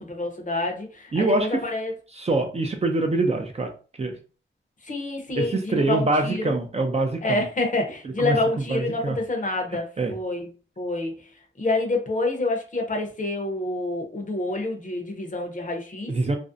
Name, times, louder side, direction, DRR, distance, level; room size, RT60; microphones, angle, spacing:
voice 1, 0.1-1.9 4.8-6.6 7.2-10.5 10.8-11.2 11.6-16.2, left 2 dB, 40° left, 3 dB, 0.7 m, -27 dB
voice 2, 1.1-1.5 2.1-3.7 4.0-4.1 5.4-7.4 8.2-8.3 8.7-9.2 10.0-10.1 16.1-16.4, right 2 dB, 30° right, 4 dB, 0.4 m, -24 dB
2.5 x 2.0 x 2.5 m, 0.36 s
wide cardioid pair, 80°, 20 cm